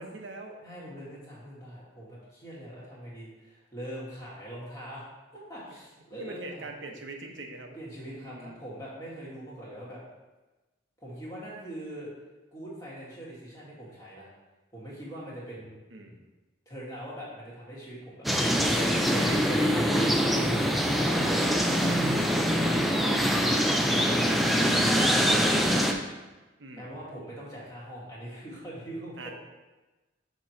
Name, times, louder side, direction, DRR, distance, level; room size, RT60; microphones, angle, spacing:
voice 1, 0.0-0.6 6.1-7.8 8.1-8.6 15.9-16.2 18.8-20.8 26.6-26.9 29.2-29.3, right 2 dB, 75° right, 3 dB, 0.9 m, -40 dB
voice 2, 0.6-5.0 5.5-6.7 7.7-10.0 11.0-12.1 12.5-14.3 14.7-15.8 16.0-16.1 16.7-18.8 19.2-19.7 20.8-26.2 26.7-29.3, equal, 20° left, -7 dB, 1.9 m, -42 dB
sound 1, 18.3-25.9, equal, ahead, 0.4 m, -24 dB
6.4 x 3.1 x 5.7 m, 1.1 s
head